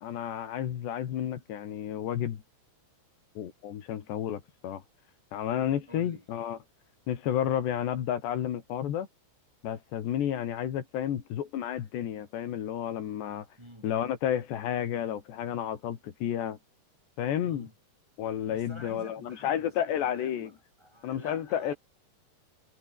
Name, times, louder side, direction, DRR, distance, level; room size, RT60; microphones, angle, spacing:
voice 1, 0.0-2.4 3.4-4.8 5.3-6.6 7.1-9.1 9.6-13.5 13.8-16.6 17.2-17.7 18.2-20.5 21.0-21.7, left 10 dB, 80° left, 4.4 m, -31 dB
voice 2, 5.9-6.3 13.6-13.9 17.4-17.7 18.5-21.8, equal, 5° right, 6.0 m, -49 dB
omnidirectional pair, 4.9 m